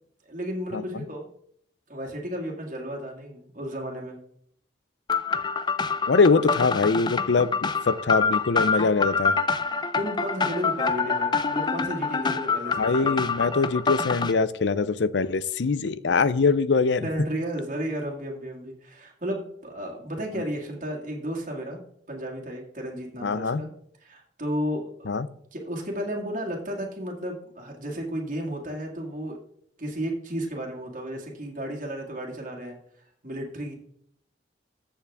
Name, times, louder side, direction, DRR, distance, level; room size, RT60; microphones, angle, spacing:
voice 1, 0.3-1.3 1.9-4.2 10.0-13.1 17.0-21.8 22.1-23.7 24.0-25.1 25.5-29.4 29.8-32.8 33.2-33.7, equal, 45° right, -1 dB, 1.9 m, -33 dB
sound 1, 5.1-14.3, left 5 dB, 25° left, 0.5 m, -26 dB
voice 2, 6.1-7.5 7.9-9.3 12.8-17.1 23.2-23.6 25.1-25.3, left 4 dB, 75° left, 16 dB, 0.5 m, -23 dB
14.0 x 7.2 x 3.5 m, 0.68 s
head